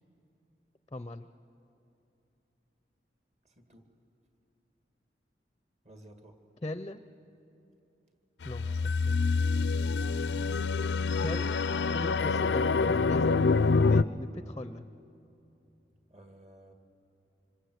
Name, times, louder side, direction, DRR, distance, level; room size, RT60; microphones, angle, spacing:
voice 1, 0.9-1.3 6.6-7.0 8.4-9.2 11.2-11.6 11.9-14.9, left 1 dB, 25° left, 11 dB, 0.6 m, -39 dB
voice 2, 3.4-3.9 5.8-6.4 8.6-8.9 16.1-16.7, right 1 dB, 40° right, 5 dB, 2.2 m, -54 dB
sound 1, 8.4-14.0, left 4 dB, 80° left, 0.5 m, -26 dB
26.5 x 26.5 x 8.0 m, 2.8 s
head